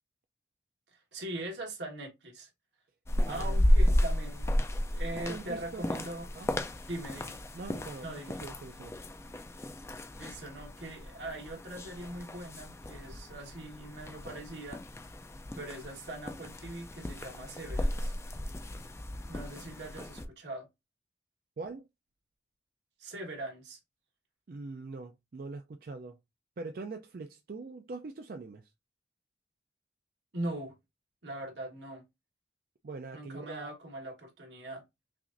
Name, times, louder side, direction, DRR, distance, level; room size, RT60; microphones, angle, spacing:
voice 1, 1.1-2.5 3.3-4.5 4.9-6.3 6.9-7.4 8.0-8.4 10.2-14.8 15.6-18.1 19.3-20.7 23.0-23.8 30.3-30.7 31.2-32.0 33.1-34.8, right 1 dB, 85° right, 1.4 m, -41 dB
sound 1, 3.1-20.2, left 1 dB, 15° left, 0.3 m, -33 dB
voice 2, 3.3-3.6 5.2-6.0 6.4-6.5 7.5-9.0 21.6-21.9 24.5-26.2 26.6-28.7 32.8-33.7, right 3 dB, 55° right, 0.4 m, -43 dB
5.8 x 2.5 x 2.5 m
head